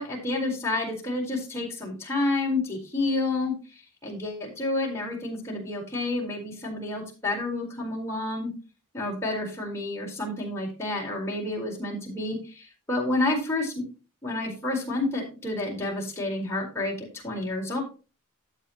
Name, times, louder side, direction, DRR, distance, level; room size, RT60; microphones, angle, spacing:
voice 1, 0.0-3.5 4.0-8.5 8.9-13.9 14.2-17.8, left 2 dB, 15° left, -3 dB, 4.4 m, -29 dB
13.0 x 7.9 x 3.0 m, 0.32 s
head